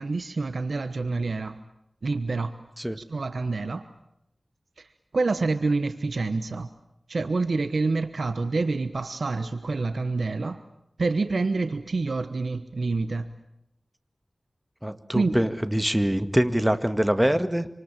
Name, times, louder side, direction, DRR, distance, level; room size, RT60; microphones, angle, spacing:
voice 1, 0.0-1.6 2.0-2.6 3.0-3.9 4.8-4.9 5.1-6.7 7.1-10.6 11.0-13.3 15.1-15.5, right 3 dB, 85° right, 11 dB, 1.1 m, -27 dB
voice 2, 14.8-17.7, equal, 10° right, 10 dB, 2.0 m, -24 dB
27.5 x 26.5 x 7.5 m, 0.79 s
wide cardioid pair, 55°, 0 cm